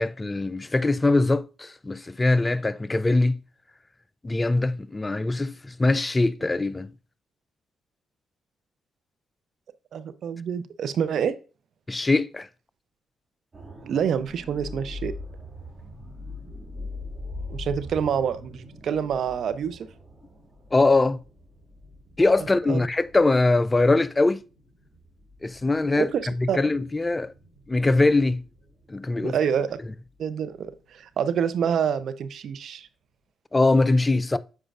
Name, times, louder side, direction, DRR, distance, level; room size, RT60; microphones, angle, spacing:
voice 1, 0.0-3.4 4.2-6.9 11.9-12.5 20.7-21.2 22.2-24.4 25.4-27.3 27.7-28.4 28.9-29.4 33.5-34.4, left 2 dB, 25° left, 0.4 m, -22 dB
voice 2, 9.9-11.3 13.8-15.1 17.5-19.9 22.7-22.8 26.0-26.6 29.2-29.8 30.2-32.9, right 7 dB, 65° right, 0.5 m, -27 dB
sound 1, 13.5-31.4 31.8-32.0, left 2 dB, 30° right, 2.0 m, -43 dB
8.0 x 4.9 x 2.4 m
hypercardioid pair, 50°, 0 cm